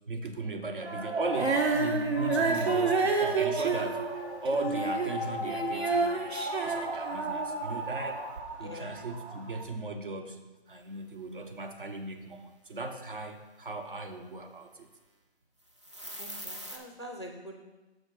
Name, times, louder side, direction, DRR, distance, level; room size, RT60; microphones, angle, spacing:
voice 1, 0.1-4.0 4.4-6.1 6.6-8.3 8.6-14.9, right 2 dB, 55° right, 5 dB, 0.8 m, -37 dB
sound 1, 0.8-9.6, right 1 dB, 90° right, 1.4 m, -36 dB
Female singing, 1.3-7.7 8.4-8.5, right 4 dB, 75° right, 1.0 m, -29 dB
voice 2, 8.6-8.9 16.2-17.6, equal, 25° left, 3 dB, 0.4 m, -44 dB
sound 2, 15.7-16.8, equal, 30° right, 0.5 m, -41 dB
6.4 x 5.2 x 4.8 m, 1.1 s
figure-of-eight pair, 160°, 33 cm